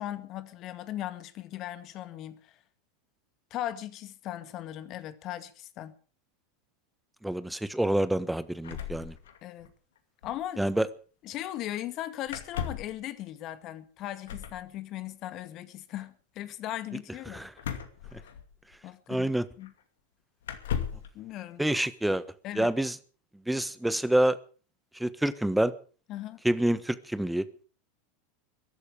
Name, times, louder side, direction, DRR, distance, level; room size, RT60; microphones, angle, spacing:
voice 1, 0.0-2.6 3.5-5.9 9.4-9.7 10.2-10.6 11.2-17.5 18.8-19.3 19.6-19.7 21.1-21.7 22.4-22.7 26.1-26.4, left 13 dB, 45° left, 2.0 m, -38 dB
voice 2, 7.2-9.1 10.6-10.9 17.3-17.5 18.1-18.2 19.1-19.4 21.6-22.2 22.5-22.9 23.5-24.4 25.0-25.7 26.4-27.4, right 1 dB, 5° right, 1.4 m, -27 dB
sound 1, 8.6-9.7 10.0-10.1 10.2-10.4 12.3-13.0 14.2-14.6 17.6-18.7 19.6-19.7 20.4-21.1, left 8 dB, 70° left, 2.4 m, -36 dB
22.5 x 12.0 x 5.0 m
figure-of-eight pair, 85°, 0 cm